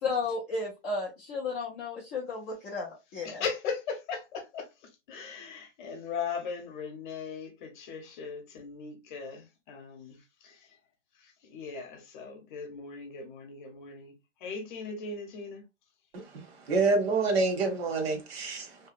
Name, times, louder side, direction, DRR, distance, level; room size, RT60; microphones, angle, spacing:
voice 1, 0.0-3.4, left 3 dB, 15° left, 0.4 m, -33 dB
voice 2, 3.2-10.8 11.1-14.1 14.4-15.6, left 5 dB, 40° left, 0.8 m, -39 dB
voice 3, 16.1-18.9, right 3 dB, 55° right, 1.1 m, -28 dB
2.8 x 2.2 x 2.4 m
supercardioid pair, 165°, 35 cm